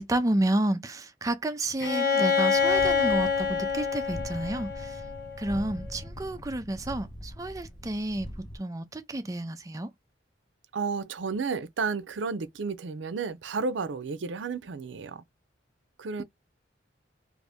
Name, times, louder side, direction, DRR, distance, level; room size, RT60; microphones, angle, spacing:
voice 1, 0.0-5.0 5.4-9.9, right 1 dB, 20° right, 0.4 m, -30 dB
Bowed string instrument, 1.8-5.6, left 6 dB, 60° left, 0.7 m, -26 dB
sound 1, 2.5-8.6, equal, 25° left, 0.8 m, -42 dB
voice 2, 10.7-15.2 16.0-16.2, right 4 dB, 80° right, 0.5 m, -32 dB
2.6 x 2.6 x 3.4 m
head